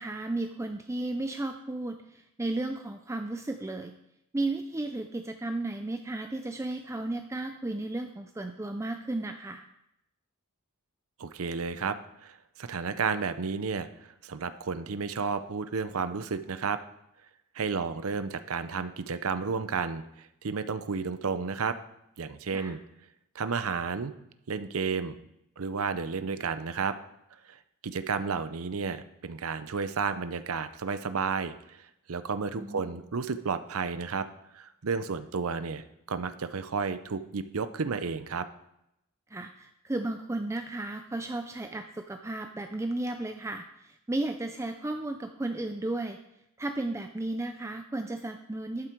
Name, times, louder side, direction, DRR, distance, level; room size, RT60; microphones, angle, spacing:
voice 1, 0.0-3.9 4.3-9.6 22.5-22.7 32.6-33.0 39.3-46.2 46.6-48.9, right 2 dB, 15° right, 6 dB, 0.5 m, -34 dB
voice 2, 11.2-16.8 17.5-21.8 22.2-22.8 23.3-24.1 24.5-25.2 25.6-26.9 27.5-31.5 32.1-34.3 34.5-35.8 36.1-38.5, right 5 dB, 70° right, 11 dB, 0.7 m, -32 dB
11.5 x 8.1 x 4.6 m, 0.82 s
head